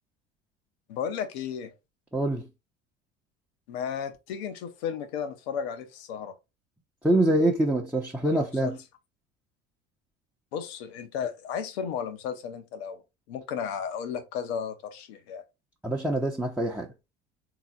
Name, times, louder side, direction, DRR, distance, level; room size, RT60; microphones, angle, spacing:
voice 1, 0.9-1.7 3.7-6.3 8.4-8.7 10.5-13.0 13.3-15.4, left 7 dB, 70° left, 1.0 m, -34 dB
voice 2, 2.1-2.5 7.0-8.8 15.8-16.9, right 1 dB, 5° right, 0.8 m, -25 dB
4.0 x 2.9 x 3.9 m
hypercardioid pair, 70°, 33 cm